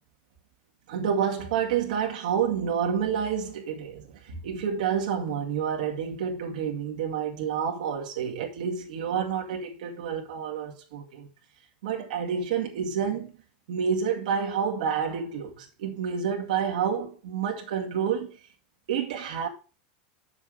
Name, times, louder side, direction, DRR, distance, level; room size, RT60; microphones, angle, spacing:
voice 1, 0.9-11.3 11.8-13.3 13.7-18.4 18.9-19.5, right 7 dB, 80° right, 2.1 m, -29 dB
7.8 x 6.1 x 6.3 m
supercardioid pair, 155°, 4 cm